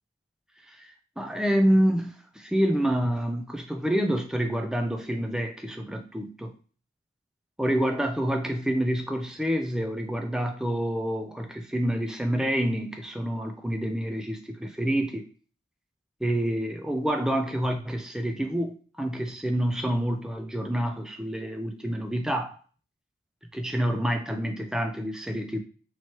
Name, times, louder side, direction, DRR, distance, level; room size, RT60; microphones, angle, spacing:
voice 1, 0.7-6.5 7.6-15.3 16.2-22.6 23.5-25.6, equal, 5° right, 0.4 m, -27 dB
3.1 x 3.1 x 4.3 m
head